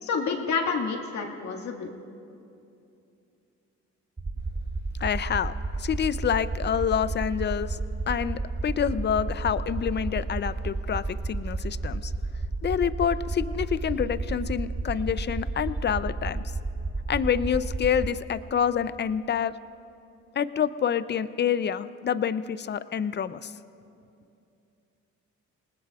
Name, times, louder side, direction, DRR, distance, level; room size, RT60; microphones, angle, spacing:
voice 1, 0.0-2.0, left 5 dB, 65° left, 1 dB, 1.9 m, -29 dB
sound 1, 4.2-18.1, right 3 dB, 15° right, 0.6 m, -31 dB
voice 2, 5.0-7.8 8.1-12.1 12.6-16.4 17.1-19.5 20.4-23.5, left 8 dB, 35° left, 14 dB, 0.5 m, -27 dB
27.5 x 19.5 x 2.4 m, 2.6 s
cardioid pair, 90°, 30 cm